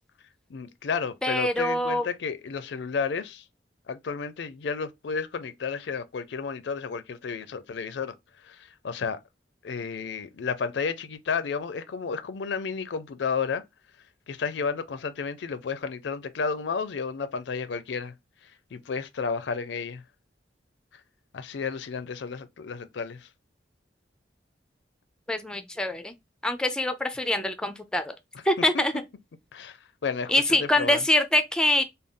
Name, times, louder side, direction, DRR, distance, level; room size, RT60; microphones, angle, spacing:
voice 1, 0.5-3.4 3.9-8.1 8.4-8.6 8.8-9.2 9.6-13.6 14.3-18.1 18.7-20.0 21.3-23.3 28.7-28.8 29.5-29.8 30.0-31.0, left 5 dB, 75° left, 0.4 m, -32 dB
voice 2, 1.2-2.0 25.3-26.1 26.4-28.1 28.5-28.9 30.3-31.8, left 1 dB, 5° left, 0.3 m, -24 dB
3.4 x 2.2 x 3.6 m
head